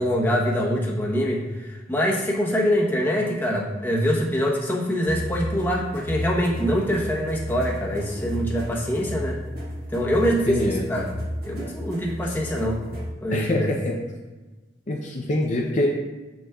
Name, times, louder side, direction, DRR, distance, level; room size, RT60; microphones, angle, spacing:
voice 1, 0.0-9.4 9.9-11.1 11.4-12.8 13.2-13.7, equal, 10° left, -3 dB, 1.0 m, -24 dB
sound 1, 5.1-13.1, equal, 55° right, 1.5 m, -33 dB
voice 2, 10.5-10.9 13.3-13.9 14.9-15.9, left 1 dB, 40° left, -1 dB, 0.6 m, -24 dB
6.9 x 6.2 x 2.3 m, 1.2 s
head